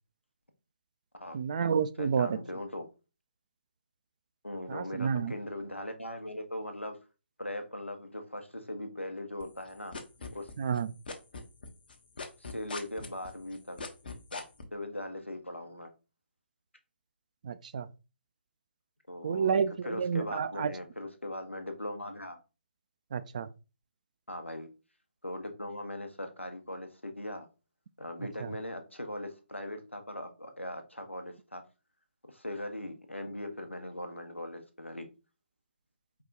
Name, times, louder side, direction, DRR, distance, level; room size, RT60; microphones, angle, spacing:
voice 1, 1.3-2.4 4.7-5.3 10.6-10.9 17.4-17.9 19.2-20.7 23.1-23.5 28.4-28.5, right 6 dB, 40° right, 0.3 m, -30 dB
voice 2, 2.0-2.9 4.4-7.0 7.4-9.9 10.3-10.5 12.4-13.8 14.3-14.4 14.7-15.9 19.1-19.5 19.8-22.4 24.3-24.7 25.2-27.5 28.0-31.6 32.3-35.1, left 1 dB, 85° left, 1.0 m, -39 dB
sound 1, 9.4-10.8 11.1-14.6, left 4 dB, 50° left, 0.8 m, -40 dB
4.7 x 2.3 x 3.9 m
figure-of-eight pair, 140°, 6 cm